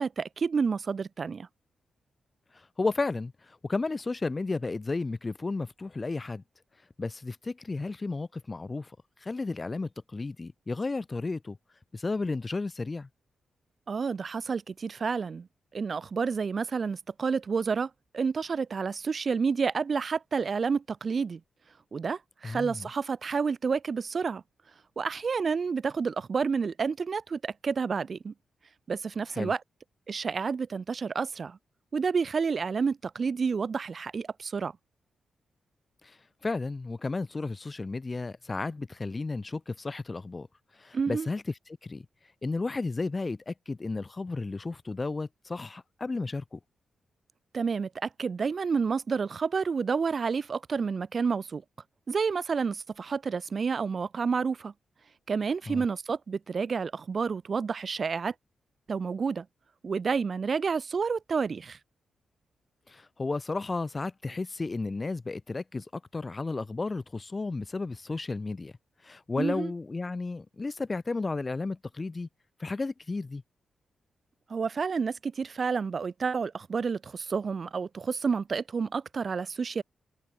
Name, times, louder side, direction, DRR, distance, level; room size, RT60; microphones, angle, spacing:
voice 1, 0.0-1.5 13.9-15.5 15.7-21.4 21.9-24.4 25.0-28.3 28.9-29.6 30.1-31.6 31.9-34.7 40.9-41.3 47.5-51.6 52.1-54.7 55.3-58.3 58.9-59.4 59.8-61.8 69.4-69.7 74.5-79.8, right 5 dB, 45° right, 1.3 m, -29 dB
voice 2, 2.8-3.3 3.6-6.4 7.0-8.9 9.2-11.6 11.9-13.1 22.4-22.9 29.3-29.5 36.4-40.5 40.8-41.4 41.8-42.0 42.4-46.6 55.7-55.8 62.9-68.7 69.0-72.3 72.6-73.4, left 3 dB, 25° left, 5.0 m, -33 dB
cardioid pair, 115°, 0 cm